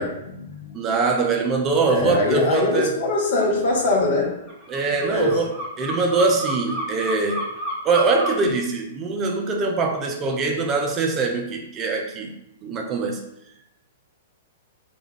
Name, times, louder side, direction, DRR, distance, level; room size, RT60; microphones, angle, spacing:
voice 1, 0.0-0.7 1.9-4.3 5.0-5.4, left 2 dB, 50° left, 0 dB, 0.6 m, -22 dB
voice 2, 0.7-3.0 4.7-7.4 7.8-12.3 12.6-13.2, right 4 dB, 25° right, 3 dB, 0.3 m, -23 dB
sound 1, 3.4-3.5 3.8-8.5, right 1 dB, ahead, 0.8 m, -31 dB
2.2 x 2.2 x 3.2 m, 0.83 s
figure-of-eight pair, 105°, 0 cm